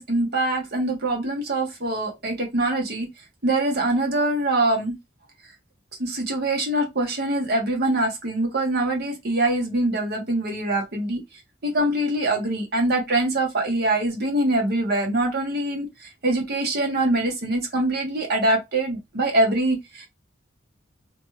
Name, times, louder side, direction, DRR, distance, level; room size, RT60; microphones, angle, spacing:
voice 1, 0.0-3.1 3.4-5.0 6.0-11.2 11.6-20.1, right 1 dB, 55° right, 1.1 m, -24 dB
2.9 x 2.2 x 3.1 m
head